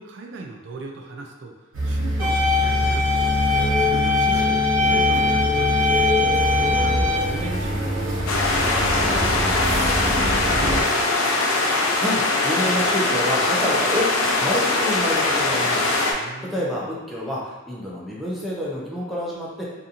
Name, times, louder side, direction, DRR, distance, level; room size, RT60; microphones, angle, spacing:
voice 1, 0.0-1.5 1.8-3.5 3.8-5.9 6.6-8.2 8.6-11.2 16.1-16.9, right 3 dB, 65° right, 2 dB, 0.3 m, -37 dB
sound 1, 1.7-10.8, equal, 85° right, 0.8 m, -24 dB
sound 2, 2.2-7.2, left 3 dB, 20° right, 1.2 m, -22 dB
sound 3, 8.3-16.1, left 2 dB, 90° left, 0.4 m, -21 dB
voice 2, 12.0-16.0 16.4-19.6, left 1 dB, ahead, -6 dB, 0.5 m, -28 dB
2.8 x 2.5 x 2.4 m, 1.1 s
head